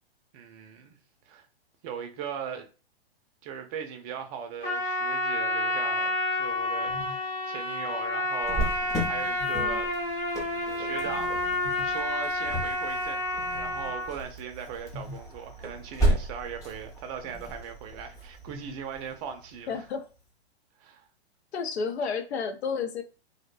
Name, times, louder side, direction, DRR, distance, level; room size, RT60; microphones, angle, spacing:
voice 1, 0.3-1.0 1.3-1.5 1.8-2.7 3.4-8.7 9.0-9.9 10.4-19.8 20.8-21.1, right 7 dB, 35° right, 0.5 m, -39 dB
Trumpet, 4.6-14.1, left 2 dB, 30° left, 1.0 m, -29 dB
sound 1, 6.9-7.2 8.9-9.6 11.1-11.9 13.4-14.0 14.9-15.2 17.2-17.5 18.5-18.7, left 2 dB, 55° left, 0.7 m, -44 dB
Cricket, 8.4-19.9, right 1 dB, 10° left, 0.6 m, -34 dB
voice 2, 19.7-20.1 21.5-23.0, left 5 dB, 85° left, 0.6 m, -31 dB
2.5 x 2.1 x 2.3 m
hypercardioid pair, 125°, 32 cm